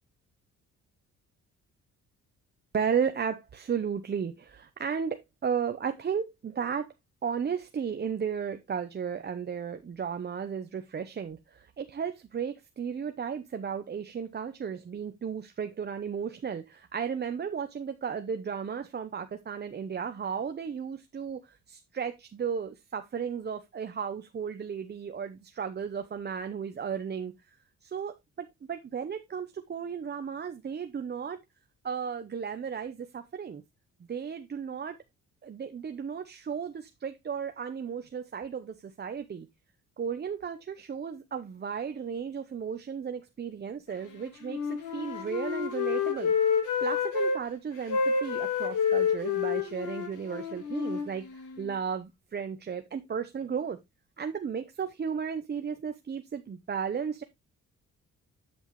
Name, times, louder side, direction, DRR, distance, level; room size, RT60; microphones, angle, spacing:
voice 1, 2.7-6.9 7.2-27.3 27.8-31.4 31.8-33.6 34.1-35.0 35.4-39.5 40.0-46.3 46.8-53.8 54.2-57.2, right 7 dB, 35° right, 0.8 m, -34 dB
Wind instrument woodwind instrument, 44.4-47.4 47.9-51.7, left 6 dB, 85° left, 2.4 m, -29 dB
9.2 x 6.2 x 3.1 m
cardioid pair, 90°, 30 cm